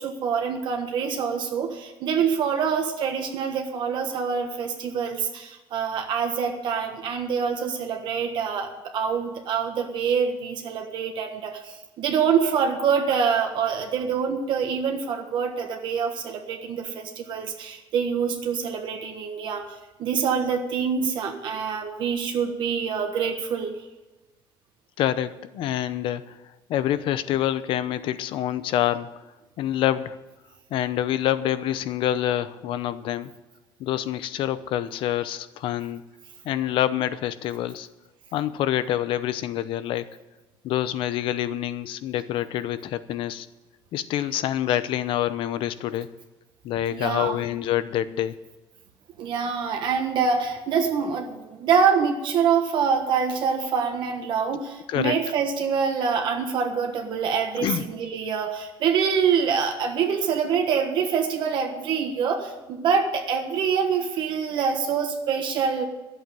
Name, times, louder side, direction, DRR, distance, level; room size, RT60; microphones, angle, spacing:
voice 1, 0.0-23.7 46.9-47.5 49.2-65.8, right 6 dB, 60° right, 3 dB, 1.4 m, -25 dB
voice 2, 25.0-26.3 26.7-29.1 29.6-30.2 30.7-33.3 33.8-36.0 36.4-37.9 38.3-40.1 40.6-43.5 43.9-46.1 46.6-48.3 54.5-54.6 54.9-55.2 57.6-57.9, left 12 dB, 75° left, 14 dB, 0.7 m, -26 dB
12.0 x 7.9 x 9.1 m, 1.1 s
cardioid pair, 165°, 9 cm